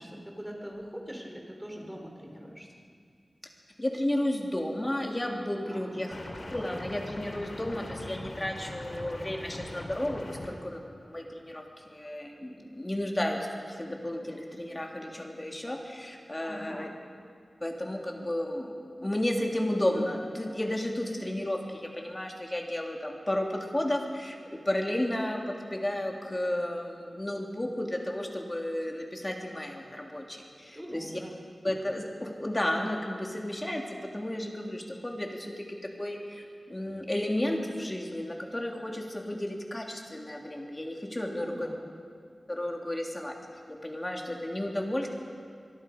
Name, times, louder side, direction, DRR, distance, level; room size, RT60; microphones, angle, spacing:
voice 1, 0.0-2.7 5.6-6.2 16.4-16.9 30.7-31.4 41.3-41.8, equal, 5° right, 1 dB, 3.7 m, -42 dB
voice 2, 3.8-6.2 6.5-16.9 17.6-24.4 24.6-31.2 31.6-41.7 42.5-43.4 43.7-45.1, left 1 dB, 20° left, 0 dB, 3.1 m, -33 dB
sound 1, 6.1-10.5, left 1 dB, 55° left, 3.0 m, -41 dB
25.5 x 22.0 x 5.3 m, 2.2 s
wide cardioid pair, 100°, 0 cm